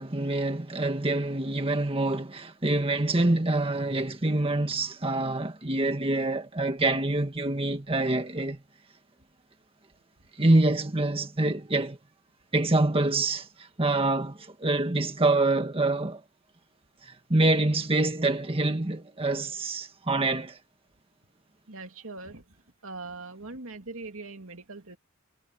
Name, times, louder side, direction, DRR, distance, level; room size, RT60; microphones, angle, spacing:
voice 1, 0.0-8.6 10.4-12.0 12.5-16.2 17.0-20.6, right 2 dB, 25° right, 1.6 m, -26 dB
voice 2, 21.7-22.4 22.8-25.0, right 3 dB, 70° right, 2.9 m, -41 dB
head